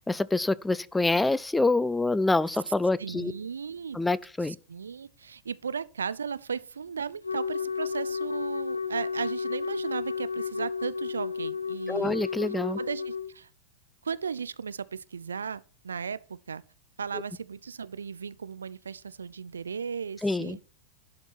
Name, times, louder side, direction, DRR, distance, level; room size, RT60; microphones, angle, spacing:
voice 1, 0.0-3.3 3.9-4.6 11.9-12.8 20.2-20.6, left 2 dB, 5° left, 0.3 m, -26 dB
voice 2, 3.0-4.0 4.5-12.1 12.8-13.5 14.0-16.6 17.0-20.7, right 6 dB, 70° right, 0.4 m, -36 dB
Wind instrument woodwind instrument, 7.2-13.3, left 6 dB, 80° left, 0.7 m, -32 dB
11.5 x 4.4 x 5.9 m
figure-of-eight pair, 90°, 0 cm